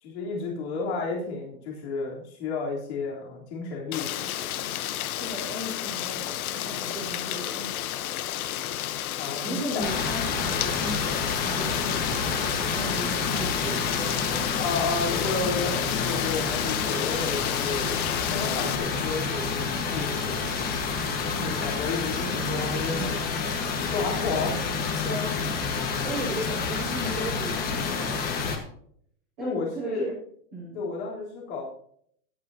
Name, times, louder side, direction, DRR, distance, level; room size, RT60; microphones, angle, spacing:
voice 1, 0.0-4.2 9.2-9.8 14.5-18.0 18.3-20.7 21.4-23.3 23.9-24.7 29.4-30.1 30.7-31.7, left 4 dB, 50° left, -3 dB, 3.4 m, -32 dB
Rain, 3.9-18.8, left 12 dB, 75° left, 1.0 m, -32 dB
voice 2, 5.2-7.7 9.4-15.7 21.4-21.7 25.0-28.7 29.4-30.2 30.5-30.8, right 1 dB, 5° right, -11 dB, 0.3 m, -37 dB
sound 1, 9.8-28.6, left 5 dB, 20° left, 1.3 m, -29 dB
16.5 x 11.0 x 2.7 m, 0.64 s
supercardioid pair, 175°, 44 cm